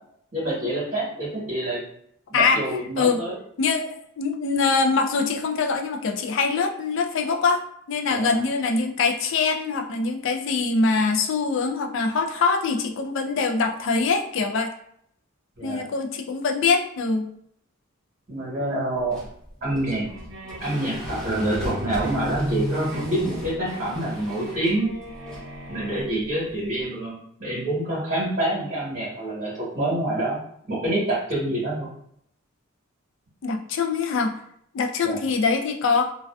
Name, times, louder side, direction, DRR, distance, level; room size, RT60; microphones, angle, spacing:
voice 1, 0.3-1.8 2.3-3.4 8.1-8.4 15.6-15.8 18.3-19.2 19.6-20.0 20.6-24.9 25.7-30.4 30.7-31.9 35.0-35.2, right 1 dB, 40° right, -8 dB, 1.1 m, -27 dB
voice 2, 3.6-14.7 15.6-17.3 33.4-34.4 34.7-36.1, left 4 dB, 60° left, 4 dB, 0.3 m, -23 dB
sound 1, 18.9-26.8, left 1 dB, 5° left, 0.5 m, -39 dB
sound 2, 20.0-26.0, right 1 dB, 60° right, 0.6 m, -34 dB
2.4 x 2.2 x 2.2 m, 0.69 s
head